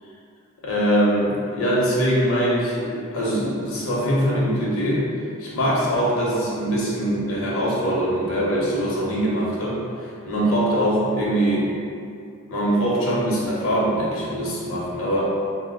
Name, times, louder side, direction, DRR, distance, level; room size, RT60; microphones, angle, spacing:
voice 1, 0.6-5.0 5.4-11.7 12.5-15.2, equal, 70° left, -6 dB, 0.8 m, -22 dB
2.6 x 2.1 x 3.8 m, 2.4 s
head